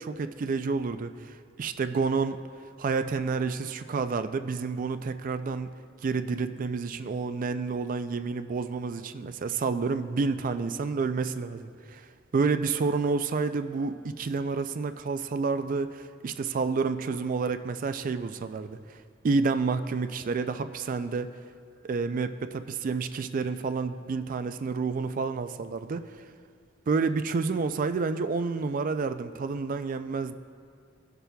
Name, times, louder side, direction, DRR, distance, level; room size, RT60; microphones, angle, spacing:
voice 1, 0.0-2.4 2.8-5.7 6.0-12.1 12.3-19.0 19.2-21.3 21.8-26.2 26.9-30.3, right 4 dB, 45° right, 10 dB, 0.3 m, -29 dB
16.5 x 6.7 x 2.3 m, 2.2 s
head